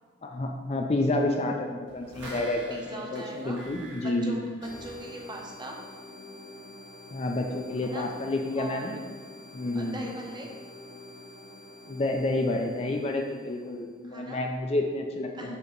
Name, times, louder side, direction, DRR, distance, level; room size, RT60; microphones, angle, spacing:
voice 1, 0.2-4.4 7.1-8.9 9.5-10.1 11.9-15.6, left 2 dB, 30° left, 2 dB, 0.4 m, -29 dB
sound 1, 1.9-5.4 5.7-5.8, equal, 75° right, 1.2 m, -46 dB
voice 2, 2.1-3.6 4.0-5.8 7.8-8.1 8.5-9.0 9.7-10.5 14.0-14.4 15.3-15.6, right 1 dB, 20° right, -1 dB, 0.7 m, -41 dB
sound 2, 4.6-14.0, left 2 dB, 80° left, 1.1 m, -47 dB
6.6 x 2.9 x 5.1 m, 1.5 s
head